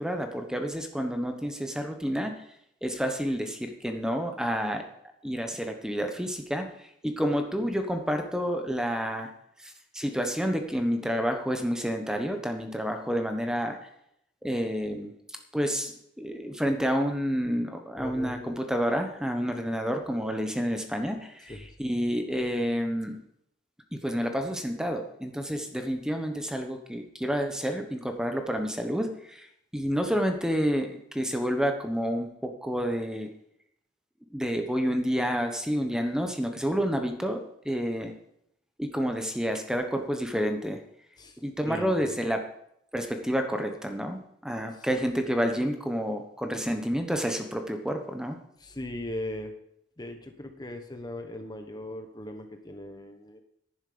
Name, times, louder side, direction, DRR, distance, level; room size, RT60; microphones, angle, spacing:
voice 1, 0.0-2.4 2.8-4.9 5.2-9.3 9.6-13.9 14.4-15.1 15.5-15.9 16.2-23.2 23.9-29.5 29.7-33.3 34.3-38.1 38.8-40.8 41.4-42.5 42.9-48.4, equal, 5° right, 5 dB, 1.0 m, -29 dB
voice 2, 18.0-18.5 19.3-19.4 21.5-21.7 41.2-41.4 41.7-42.1 44.7-44.9 48.6-49.5 50.0-53.4, left 1 dB, 20° left, 6 dB, 1.0 m, -39 dB
11.0 x 10.5 x 5.0 m, 0.72 s
head